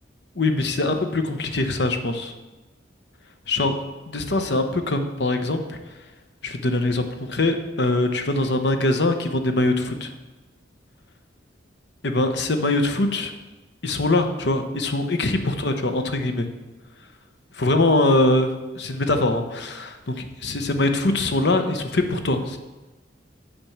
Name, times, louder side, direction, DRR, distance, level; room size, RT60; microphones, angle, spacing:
voice 1, 0.4-2.3 3.5-5.8 6.4-10.1 12.0-13.3 13.8-16.5 17.6-22.6, left 2 dB, 65° left, 7 dB, 0.9 m, -23 dB
8.7 x 4.4 x 7.2 m, 1.1 s
head